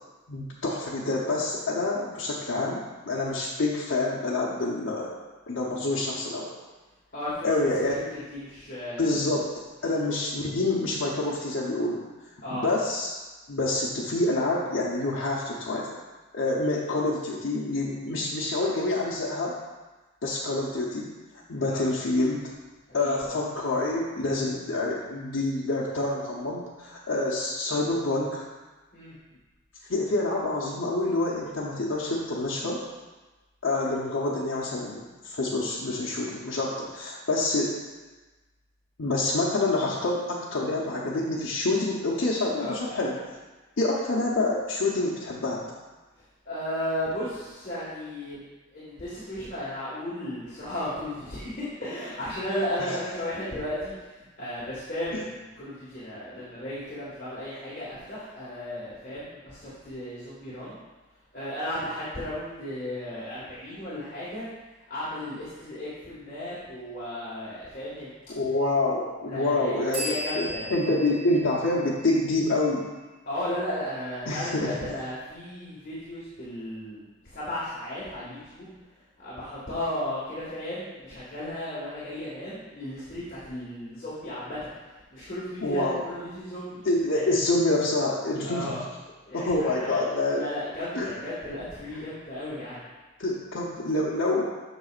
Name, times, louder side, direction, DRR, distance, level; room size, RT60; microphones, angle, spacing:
voice 1, 0.3-5.1 5.5-6.6 7.4-8.0 9.0-9.5 9.8-12.0 12.5-13.2 13.5-16.0 16.3-19.5 20.2-21.1 21.5-22.4 22.9-28.5 29.9-32.8 33.6-37.8 39.0-43.2 43.8-45.6 52.8-53.0 55.1-55.2 68.3-72.9 74.3-74.8 85.6-86.0 86.8-88.8 89.3-90.4 90.9-91.1 91.9-92.1 93.2-94.5, left 2 dB, 75° left, -6 dB, 0.9 m, -27 dB
voice 2, 7.1-9.3 9.8-9.9 12.4-12.6 21.7-21.9 23.0-23.4 28.9-29.1 42.6-42.8 46.4-48.4 48.7-60.8 61.3-64.5 64.9-68.3 69.2-70.8 73.2-78.7 79.2-84.6 85.1-87.3 88.4-88.8 89.2-92.8, left 1 dB, 45° left, -9 dB, 1.6 m, -35 dB
sound 1, 69.9-73.5, equal, 85° right, 1.5 m, -38 dB
7.9 x 6.3 x 2.5 m, 1.2 s
head